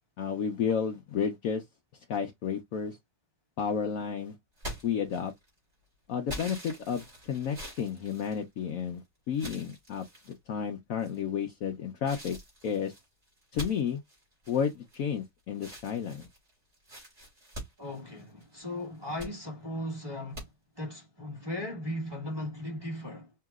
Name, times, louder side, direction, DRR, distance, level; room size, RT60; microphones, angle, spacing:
voice 1, 0.2-1.6 2.1-3.0 3.6-4.3 4.8-5.3 6.1-12.4 12.6-12.9 13.5-14.0 14.5-16.3, left 7 dB, 80° left, 0.7 m, -32 dB
sound 1, 4.6-5.6 6.3-8.9 9.3-10.4 11.0-11.5 12.0-15.2 15.5-18.5 18.9-19.4 20.3-20.5, equal, 35° right, 2.9 m, -44 dB
voice 2, 17.8-20.5 20.7-23.3, left 1 dB, 15° right, 1.5 m, -37 dB
5.6 x 2.8 x 2.3 m
omnidirectional pair, 2.2 m